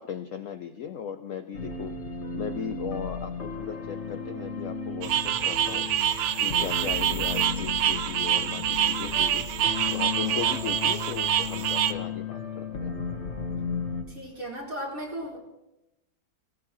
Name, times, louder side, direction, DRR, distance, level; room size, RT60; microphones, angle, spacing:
voice 1, 0.0-2.0 2.3-5.9 6.4-9.5 9.8-13.0, left 8 dB, 80° left, 9 dB, 0.7 m, -37 dB
sound 1, 1.5-14.0, left 5 dB, 40° left, 1.4 m, -34 dB
sound 2, 5.0-11.9, right 11 dB, 70° right, 1.2 m, -26 dB
voice 2, 14.1-15.4, right 1 dB, 45° right, -4 dB, 4.4 m, -36 dB
18.5 x 18.5 x 3.0 m, 0.92 s
omnidirectional pair, 2.1 m